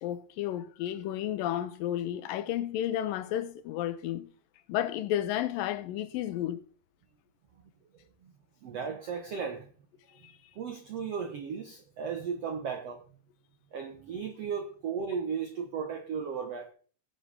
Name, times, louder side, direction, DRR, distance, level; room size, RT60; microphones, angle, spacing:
voice 1, 0.0-4.3 4.7-6.6 10.2-10.3, left 12 dB, 75° left, 2.2 m, -32 dB
voice 2, 8.6-9.7 10.5-13.0 13.7-16.7, right 6 dB, 80° right, 1.4 m, -35 dB
21.0 x 7.7 x 3.4 m
omnidirectional pair, 4.4 m